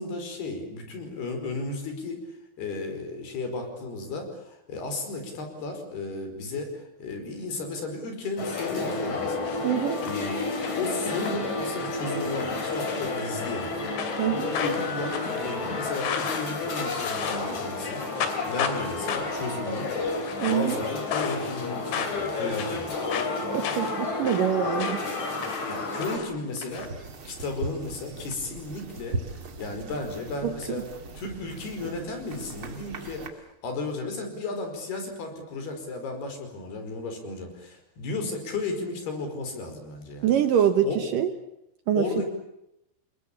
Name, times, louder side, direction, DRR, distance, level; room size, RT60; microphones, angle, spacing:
voice 1, 0.0-9.6 10.0-10.4 10.8-13.8 14.3-19.9 20.5-22.9 25.5-30.9 31.2-40.3 40.8-41.0 42.0-42.3, left 3 dB, 65° left, 6 dB, 7.0 m, -34 dB
sound 1, 8.4-26.2, left 3 dB, 45° left, 5.0 m, -31 dB
sound 2, 9.5-10.2 10.5-11.3 11.7-12.0 12.3-12.5 12.9-13.7 14.0-17.6 17.8-18.8 19.1-19.5 20.1-20.7 21.1-21.7 21.9-25.2 25.4-26.9, left 7 dB, 80° left, 4.7 m, -34 dB
voice 2, 9.6-10.0 14.2-14.5 20.4-20.8 23.4-25.1 30.4-30.8 40.2-41.3 41.9-42.0, right 10 dB, 65° right, 9 dB, 2.3 m, -25 dB
sound 3, 26.7-33.3, right 3 dB, 40° right, 2.5 m, -39 dB
29.0 x 21.0 x 8.7 m, 0.82 s
omnidirectional pair, 4.9 m